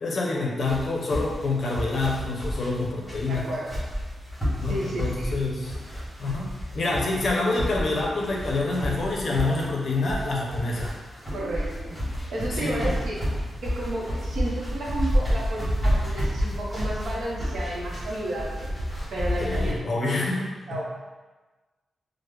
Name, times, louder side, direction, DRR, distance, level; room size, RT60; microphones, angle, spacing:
voice 1, 0.0-3.4 4.6-5.7 6.2-6.5 6.7-10.9 12.5-12.9 19.4-20.8, left 2 dB, 50° left, -2 dB, 0.5 m, -27 dB
sound 1, 0.6-19.7, equal, 5° right, 1.3 m, -30 dB
voice 2, 3.3-3.7 4.6-5.3 11.3-12.0 12.3-13.2 13.6-18.7 19.1-20.1 20.7-20.8, right 1 dB, 75° right, -4 dB, 0.7 m, -32 dB
3.0 x 2.0 x 3.3 m, 1.2 s
wide cardioid pair, 160°, 0 cm